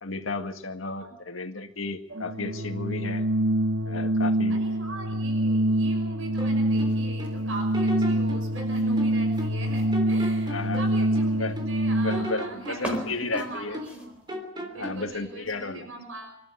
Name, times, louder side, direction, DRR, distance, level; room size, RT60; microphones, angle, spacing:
voice 1, 0.0-3.2 3.9-4.6 10.5-10.8 11.4-11.5 11.9-13.8 14.7-15.9, left 3 dB, 80° left, 6 dB, 1.9 m, -33 dB
Organ, 2.1-12.4, right 1 dB, 65° right, 1.0 m, -25 dB
voice 2, 4.5-14.2 14.7-16.4, right 2 dB, 90° right, 4 dB, 6.1 m, -41 dB
sound 1, 6.4-7.4 7.7-9.7 9.9-11.8 12.1-14.0 14.3-15.1, equal, 25° right, 3.5 m, -37 dB
sound 2, 6.7-14.3, equal, 5° right, 4.0 m, -43 dB
26.0 x 12.5 x 9.6 m, 0.78 s
head